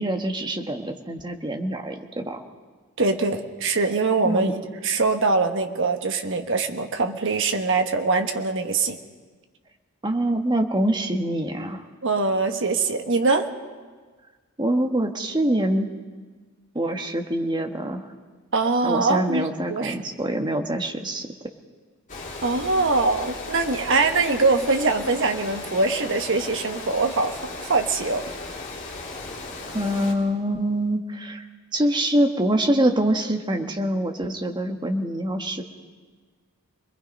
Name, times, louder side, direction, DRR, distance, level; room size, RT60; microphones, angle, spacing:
voice 1, 0.0-2.4 4.2-4.5 10.0-11.8 14.6-15.9 16.7-18.1 18.8-21.3 29.7-31.4 31.7-35.6, right 1 dB, 20° right, 4 dB, 1.4 m, -25 dB
voice 2, 3.0-4.6 4.8-9.0 12.0-13.5 18.5-20.0 22.4-28.2, right 3 dB, 60° right, 6 dB, 1.4 m, -23 dB
Water, 22.1-30.1, left 3 dB, 35° left, 3.3 m, -36 dB
26.5 x 21.5 x 5.4 m, 1.4 s
head